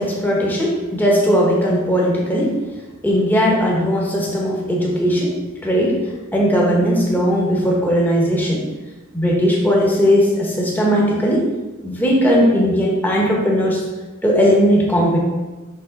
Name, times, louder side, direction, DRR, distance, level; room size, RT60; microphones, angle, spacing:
voice 1, 0.0-2.6 3.0-5.3 5.6-6.0 6.3-8.7 9.1-11.5 11.8-13.8 14.2-15.2, equal, 10° left, -3 dB, 1.3 m, -17 dB
6.6 x 3.4 x 5.3 m, 1.2 s
head